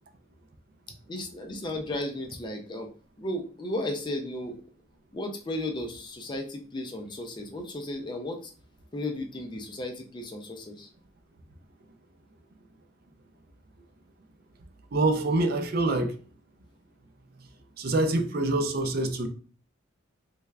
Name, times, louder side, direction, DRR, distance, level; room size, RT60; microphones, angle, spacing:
voice 1, 1.1-2.9 3.2-4.6 5.1-8.5 8.9-10.9, left 1 dB, 20° left, 0.4 m, -34 dB
voice 2, 14.9-16.1 17.8-19.3, right 2 dB, 45° right, 0.4 m, -25 dB
3.3 x 3.3 x 2.3 m
head